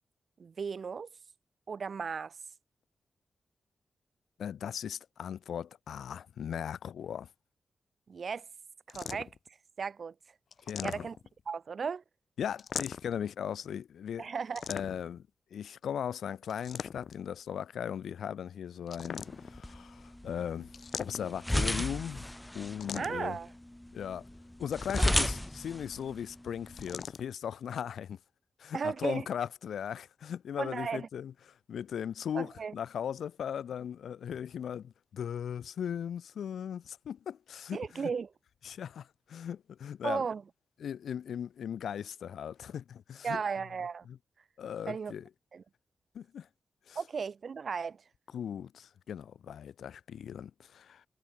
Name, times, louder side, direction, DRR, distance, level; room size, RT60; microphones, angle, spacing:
voice 1, 0.4-1.1 1.7-2.4 8.1-8.5 8.9-10.1 10.8-11.2 11.5-12.0 14.2-14.7 22.9-23.5 28.7-29.3 30.6-31.1 32.3-32.7 37.7-38.3 40.0-40.4 43.2-44.1 44.9-45.1 45.5-45.6 47.0-48.0, right 5 dB, 65° right, 3.5 m, -35 dB
voice 2, 4.4-7.3 10.7-11.1 12.4-14.3 14.7-20.7 21.0-22.2 22.5-23.4 23.9-24.3 24.6-28.2 28.6-31.3 31.7-38.1 38.6-40.2 40.8-43.4 44.1-44.2 44.6-45.2 46.1-46.5 46.9-47.0 48.3-51.0, left 8 dB, 90° left, 2.4 m, -38 dB
sound 1, 8.9-9.5 10.5-11.4 12.6-13.2 14.6-15.2 16.5-17.3 18.9-19.6 20.7-21.5 22.8-23.4 24.7-25.4 26.8-27.3, left 6 dB, 75° left, 2.6 m, -41 dB
sound 2, 19.0-27.0, left 1 dB, 10° left, 2.7 m, -35 dB
cardioid pair, 55°, 0 cm